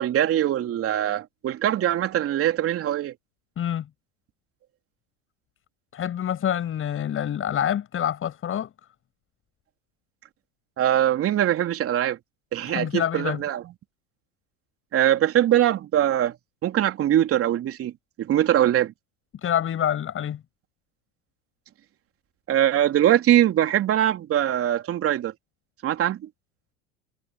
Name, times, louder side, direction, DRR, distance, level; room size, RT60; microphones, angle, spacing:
voice 1, 0.0-3.1 10.8-12.2 12.5-13.6 14.9-16.4 16.6-17.9 18.2-18.9 22.5-25.3 25.8-26.3, right 11 dB, 40° right, 3.5 m, -22 dB
voice 2, 3.6-3.9 5.9-8.7 12.7-13.4 19.4-20.4, left 10 dB, 35° left, 7.8 m, -26 dB
hypercardioid pair, 85°, 36 cm